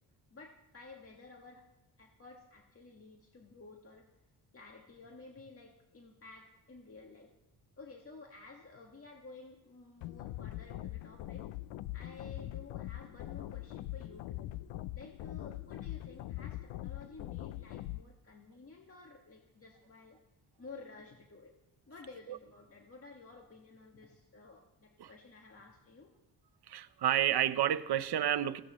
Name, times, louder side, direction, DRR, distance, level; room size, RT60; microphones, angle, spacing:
voice 1, 0.3-1.7 2.0-4.1 4.5-7.3 7.8-11.5 11.9-14.4 15.0-20.2 20.6-21.5 21.9-26.1, left 3 dB, 30° left, 0 dB, 1.9 m, -53 dB
sound 1, 10.0-18.0, left 15 dB, 85° left, 0.6 m, -42 dB
voice 2, 26.7-28.6, right 11 dB, 65° right, 13 dB, 0.9 m, -30 dB
20.0 x 16.5 x 3.1 m, 1.0 s
cardioid pair, 75°, 43 cm